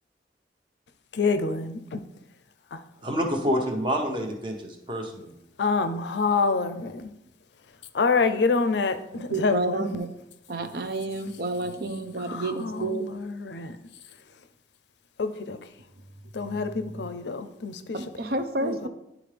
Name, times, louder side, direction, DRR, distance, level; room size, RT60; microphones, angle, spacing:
voice 1, 1.1-2.0 2.7-2.8 5.6-7.1 7.9-9.8 12.3-13.8 15.2-15.6 16.3-18.0 18.6-18.9, left 4 dB, 80° left, 0.5 m, -27 dB
voice 2, 3.0-5.3, equal, 30° right, 0.9 m, -28 dB
voice 3, 9.2-10.1 10.5-13.0 16.5-17.1 17.9-18.9, right 2 dB, 60° right, 0.6 m, -30 dB
10.5 x 3.7 x 3.4 m
head